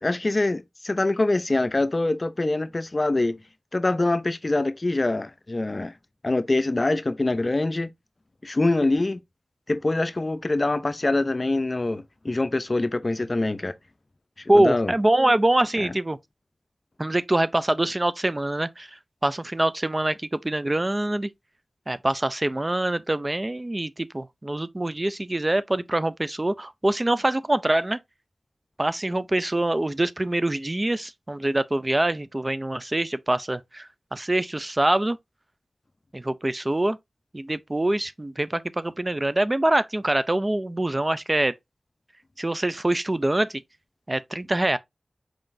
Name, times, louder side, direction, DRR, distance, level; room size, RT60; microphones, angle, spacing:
voice 1, 0.0-3.4 3.7-5.9 6.2-7.9 8.4-9.2 9.7-13.7 14.6-14.9 15.8-15.9, left 2 dB, 45° left, 0.5 m, -24 dB
voice 2, 14.5-16.2 17.0-21.3 21.9-28.0 28.8-35.2 36.1-37.0 37.3-41.5 42.4-43.6 44.1-44.8, right 1 dB, 30° right, 0.3 m, -24 dB
4.8 x 3.8 x 2.5 m
cardioid pair, 50°, 0 cm